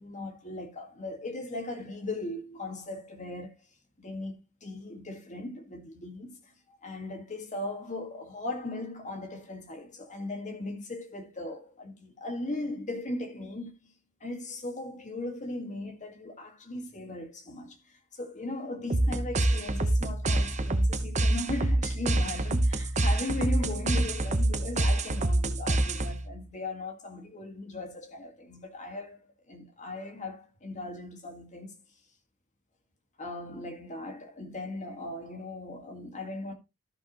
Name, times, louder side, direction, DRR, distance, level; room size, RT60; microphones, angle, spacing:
voice 1, 0.0-3.6 4.0-4.3 4.6-13.9 14.2-31.8 33.2-36.5, left 2 dB, 35° left, 1.8 m, -38 dB
sound 1, 18.9-26.3, right 1 dB, 35° right, 0.9 m, -26 dB
13.5 x 5.7 x 3.0 m
head